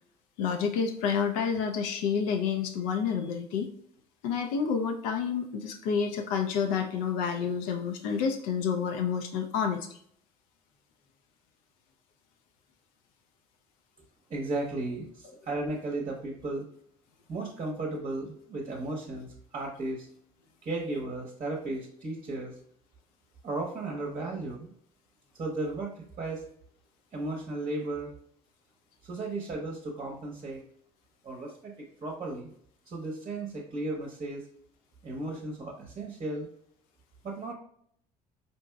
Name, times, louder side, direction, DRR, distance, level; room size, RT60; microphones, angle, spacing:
voice 1, 0.4-3.7 4.2-10.0, left 6 dB, 65° left, 5 dB, 0.4 m, -29 dB
voice 2, 14.3-16.7 17.3-20.1 20.6-22.6 23.4-24.7 25.3-26.4 27.1-28.1 29.0-30.6 31.2-32.5 32.9-34.4 35.0-36.5 37.2-37.5, right 2 dB, 35° right, 0 dB, 0.8 m, -35 dB
4.3 x 2.7 x 2.2 m, 0.66 s
figure-of-eight pair, 55°, 19 cm